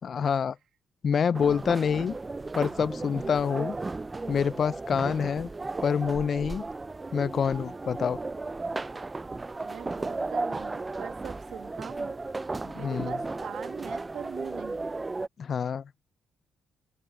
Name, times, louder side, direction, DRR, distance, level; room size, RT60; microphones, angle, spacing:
voice 1, 0.0-0.6 1.0-2.2 2.5-3.8 4.3-5.5 5.8-6.6 7.1-8.2 12.6-13.2 15.4-15.9, left 7 dB, 50° left, 0.3 m, -27 dB
sound 1, 1.3-15.3, right 3 dB, 20° right, 0.4 m, -35 dB
voice 2, 3.0-3.3 9.6-12.2 12.7-14.9, right 9 dB, 65° right, 1.5 m, -42 dB
open air
cardioid pair, 90°, 0 cm